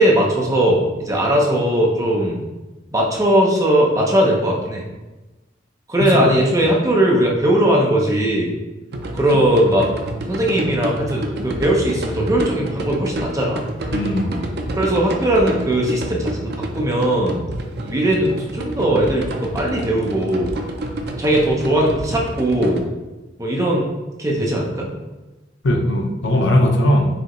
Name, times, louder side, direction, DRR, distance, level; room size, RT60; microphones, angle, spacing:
voice 1, 0.0-2.5 2.9-4.8 5.9-8.5 9.1-9.9 10.3-13.7 14.8-17.4 17.9-20.5 21.2-22.8 23.4-23.9 24.2-24.9, right 1 dB, 20° right, -1 dB, 0.7 m, -19 dB
sound 1, 8.9-22.8, right 1 dB, 60° right, 0.5 m, -29 dB
voice 2, 13.9-14.5 25.6-27.1, left 1 dB, 70° left, 2 dB, 0.7 m, -18 dB
4.9 x 3.4 x 3.1 m, 1.1 s
head